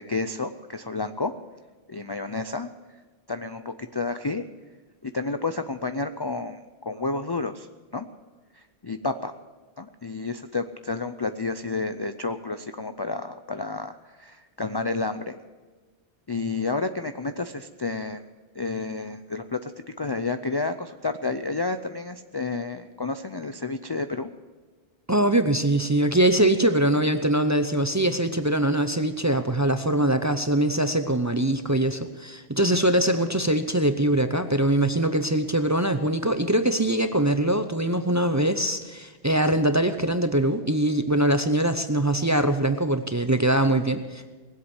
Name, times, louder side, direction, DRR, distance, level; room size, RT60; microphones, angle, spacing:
voice 1, 0.0-1.3 1.9-2.7 3.3-4.5 5.0-7.7 7.9-8.1 8.8-9.3 9.8-15.4 16.3-18.2 18.6-19.7 20.0-24.3, left 3 dB, 35° left, 8 dB, 0.4 m, -30 dB
voice 2, 25.1-44.2, right 1 dB, 20° right, 9 dB, 0.5 m, -23 dB
19.0 x 8.1 x 8.1 m, 1.3 s
omnidirectional pair, 1.1 m